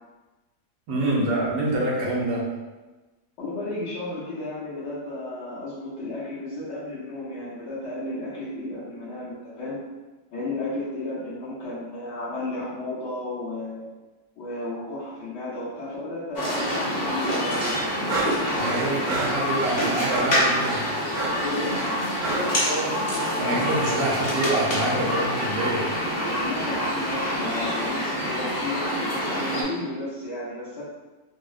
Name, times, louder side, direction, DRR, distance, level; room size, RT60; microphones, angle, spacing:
voice 1, 0.9-2.5 18.5-20.9 23.4-25.9, right 1 dB, 90° right, -5 dB, 1.4 m, -26 dB
voice 2, 3.4-9.8 10.3-13.9 14.4-17.6 18.4-18.8 21.4-21.9 26.4-30.8, left 2 dB, 80° left, -10 dB, 1.8 m, -33 dB
sound 1, 16.3-29.6, equal, 45° left, 0.6 m, -26 dB
sound 2, 17.5-22.6, right 2 dB, 70° right, 1.0 m, -31 dB
4.1 x 2.0 x 2.4 m, 1.2 s
omnidirectional pair, 1.8 m